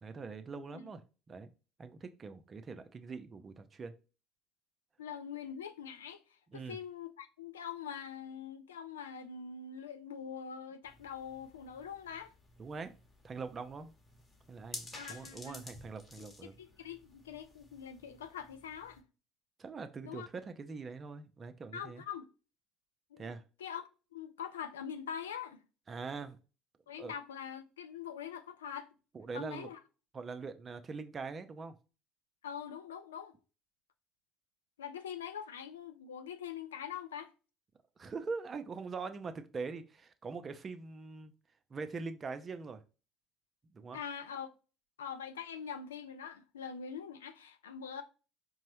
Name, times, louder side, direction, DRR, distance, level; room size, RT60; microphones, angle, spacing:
voice 1, 0.0-1.0 1.3-1.5 1.8-3.9 6.5-6.8 12.6-12.9 13.2-13.9 14.5-16.6 19.6-22.0 23.2-23.4 25.9-26.4 27.0-27.1 29.1-29.7 30.1-31.8 38.0-41.3 41.7-42.8 43.7-44.0, right 4 dB, 35° right, 0.5 m, -43 dB
voice 2, 5.0-6.2 6.5-12.3 14.9-15.6 16.2-19.0 20.0-20.3 21.7-22.3 23.1-23.3 23.6-25.6 26.9-28.9 29.3-29.8 32.4-33.3 34.8-37.3 43.9-44.5 45.0-48.0, left 8 dB, 90° left, 0.3 m, -43 dB
sound 1, 10.8-19.0, left 2 dB, 25° left, 1.0 m, -53 dB
4.5 x 2.0 x 2.9 m
hypercardioid pair, 65°, 0 cm